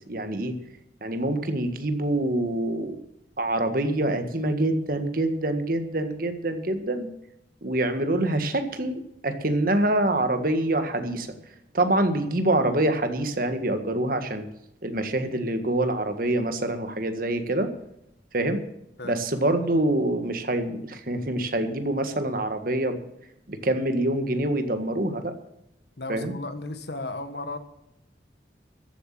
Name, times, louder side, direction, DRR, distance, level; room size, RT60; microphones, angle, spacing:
voice 1, 0.1-0.5 1.0-3.0 3.4-7.1 7.6-11.3 11.7-14.5 14.8-17.7 18.3-18.6 19.0-23.0 23.5-25.3 26.1-26.3, right 1 dB, 50° right, 8 dB, 1.7 m, -25 dB
voice 2, 26.0-27.6, left 2 dB, 65° left, 9 dB, 1.6 m, -34 dB
14.5 x 8.2 x 7.5 m, 0.80 s
head